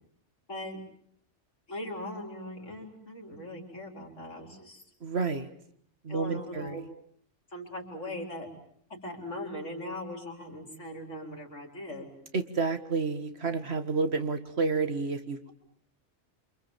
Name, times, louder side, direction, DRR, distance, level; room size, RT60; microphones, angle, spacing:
voice 1, 0.5-0.8 1.7-4.8 6.1-6.8 7.5-8.5 9.0-12.1, left 1 dB, 80° left, 2 dB, 4.9 m, -40 dB
voice 2, 5.0-5.5 6.0-6.9 12.3-15.5, right 4 dB, 60° right, 9 dB, 2.0 m, -30 dB
27.5 x 27.0 x 7.4 m, 0.66 s
omnidirectional pair, 1.2 m